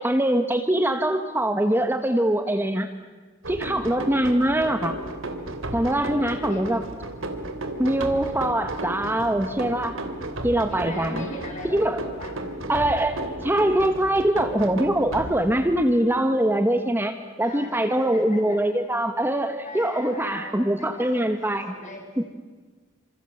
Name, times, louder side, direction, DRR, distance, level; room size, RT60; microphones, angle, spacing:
voice 1, 0.0-2.9 3.5-4.9 5.7-6.8 7.8-10.0 10.4-11.3 11.6-12.0 12.7-17.1 17.4-21.7 22.2-22.3, right 1 dB, 10° right, 7 dB, 1.2 m, -23 dB
sound 1, 3.4-15.9, right 1 dB, 75° right, 3.0 m, -34 dB
voice 2, 6.1-6.7 10.7-12.3 17.4-18.6 19.6-22.1, left 2 dB, 35° left, 1 dB, 6.9 m, -40 dB
27.0 x 27.0 x 7.9 m, 1.4 s
head